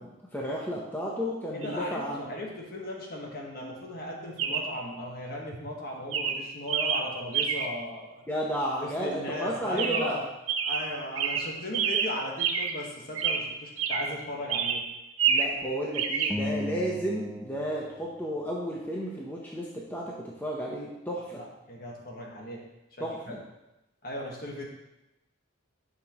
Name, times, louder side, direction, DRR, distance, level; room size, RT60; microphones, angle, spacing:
voice 1, 0.0-2.2 8.3-10.2 15.3-21.4 23.0-23.4, equal, 10° left, -4 dB, 0.8 m, -33 dB
voice 2, 1.5-8.2 8.8-10.2 10.6-14.9 21.4-23.4 24.0-24.7, left 1 dB, 45° left, -1 dB, 1.4 m, -37 dB
Chirp tweet, 1.6-1.8 4.4-4.8 5.5-5.8 6.1-7.8 9.8-10.2 10.5-12.9 13.1-14.2 14.5-15.6 15.9-16.4, right 7 dB, 75° right, 0.7 m, -28 dB
sound 1, 16.3-18.9, left 1 dB, 10° right, 0.3 m, -37 dB
10.5 x 5.9 x 3.0 m, 0.95 s
head